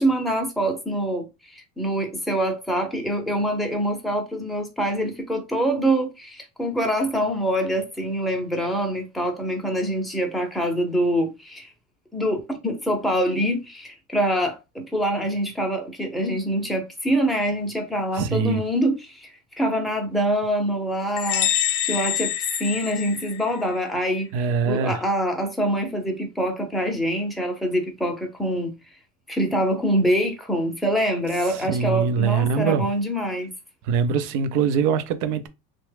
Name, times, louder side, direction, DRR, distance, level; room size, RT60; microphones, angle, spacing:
voice 1, 0.0-11.7 12.1-19.3 19.6-21.5 21.8-22.3 22.6-28.7 29.3-33.5, right 1 dB, ahead, 0.6 m, -25 dB
voice 2, 18.1-18.6 24.3-25.0 31.5-32.9 33.8-35.5, right 6 dB, 75° right, 0.6 m, -23 dB
sound 1, 21.2-23.7, left 11 dB, 50° left, 0.4 m, -26 dB
2.9 x 2.2 x 3.3 m
cardioid pair, 135°, 38 cm